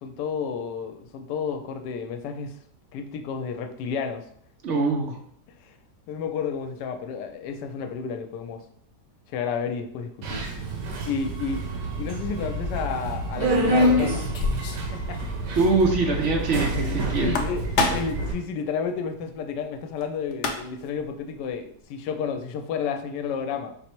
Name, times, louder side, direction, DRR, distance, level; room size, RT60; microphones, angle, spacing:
voice 1, 0.0-2.5 2.9-4.2 6.1-8.6 9.3-10.5 11.0-11.6 12.0-14.2 14.9-15.2 16.9-23.7, left 6 dB, 85° left, 7 dB, 1.2 m, -31 dB
voice 2, 4.6-5.2 15.6-17.3, right 3 dB, 65° right, 2 dB, 0.7 m, -23 dB
Subway metro underground, 10.2-18.3, right 1 dB, 85° right, 1.4 m, -27 dB
sound 1, 11.9-12.0 13.5-14.9 15.2-15.3 15.6-15.7 17.1-18.2 20.0-20.1 20.3-20.9, left 3 dB, 65° left, 0.7 m, -28 dB
5.3 x 2.0 x 4.4 m, 0.65 s
omnidirectional pair, 1.8 m